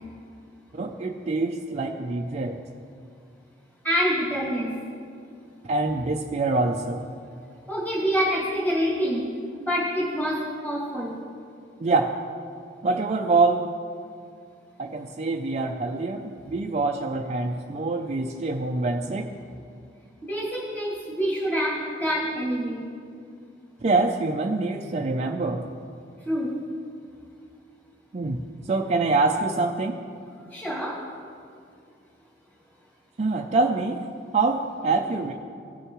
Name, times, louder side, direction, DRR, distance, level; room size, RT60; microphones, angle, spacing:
voice 1, 0.7-2.6 5.7-7.0 11.8-12.2 12.8-13.7 14.8-19.3 23.8-25.6 28.1-28.4 28.7-30.0 33.2-34.0 34.3-35.3, right 3 dB, 40° right, 2 dB, 0.4 m, -25 dB
voice 2, 3.8-4.7 7.7-9.2 9.6-11.2 20.2-22.8 26.2-26.5 30.5-31.0, equal, 10° left, -8 dB, 2.3 m, -26 dB
17.5 x 6.5 x 3.1 m, 2.3 s
head